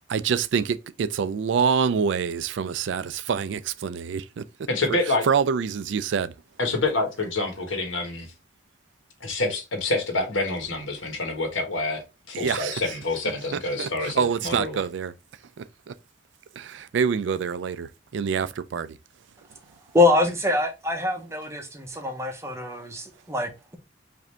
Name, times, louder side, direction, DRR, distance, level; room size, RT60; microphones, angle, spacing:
voice 1, 0.1-4.4 5.2-6.3 12.3-12.8 13.5-15.1 15.6-15.9 16.6-19.0, right 6 dB, 65° right, 0.3 m, -26 dB
voice 2, 4.7-5.2 6.6-8.3 9.2-14.8, left 2 dB, 80° left, 1.4 m, -27 dB
voice 3, 19.9-23.8, left 2 dB, 15° right, 0.7 m, -24 dB
5.0 x 2.6 x 3.3 m
head